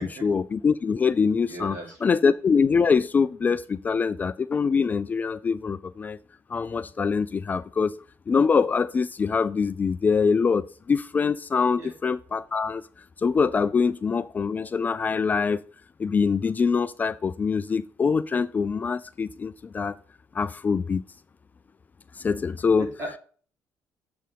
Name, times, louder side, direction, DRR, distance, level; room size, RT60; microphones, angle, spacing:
voice 1, 0.0-6.2 6.5-8.0 8.3-12.8 13.2-15.6 16.0-20.0 20.3-21.0 22.2-22.9, left 5 dB, 25° left, 0.3 m, -24 dB
voice 2, 1.5-2.1 11.8-11.9 23.0-23.2, right 1 dB, 50° right, 3.3 m, -37 dB
7.4 x 4.5 x 5.2 m
cardioid pair, 135°, 7 cm